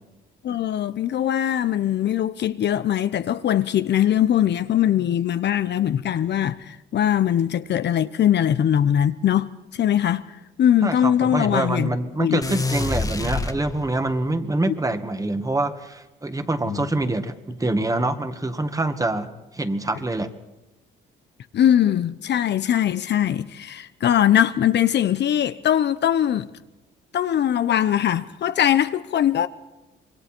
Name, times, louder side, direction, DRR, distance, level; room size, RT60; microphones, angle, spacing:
voice 1, 0.4-10.2 10.6-11.9 12.2-12.4 14.7-14.8 16.7-16.9 21.5-26.5 27.1-29.5, left 10 dB, 60° left, 0.8 m, -21 dB
voice 2, 10.8-20.3, right 2 dB, 15° right, 1.9 m, -25 dB
sound 1, 12.4-14.2, left 3 dB, 20° left, 1.5 m, -27 dB
26.0 x 22.0 x 4.5 m
cardioid pair, 90°, 20 cm